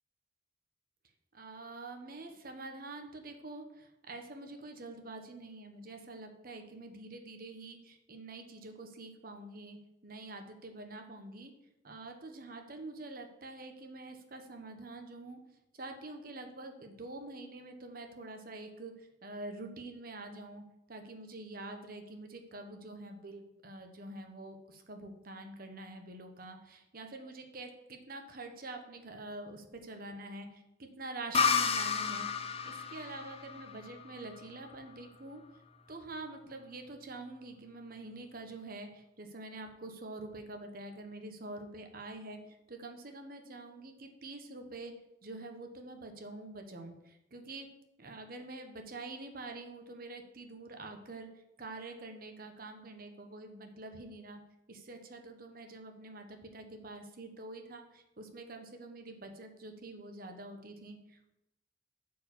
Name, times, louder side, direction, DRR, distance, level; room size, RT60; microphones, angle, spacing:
voice 1, 1.3-9.8 10.0-11.5 11.8-15.4 15.7-32.3 32.6-35.4 35.9-44.9 45.2-47.7 48.0-54.4 54.7-61.3, right 2 dB, 50° right, 5 dB, 1.2 m, -46 dB
sound 1, 31.3-34.9, left 5 dB, 35° left, 0.6 m, -32 dB
8.8 x 4.8 x 7.3 m, 0.87 s
head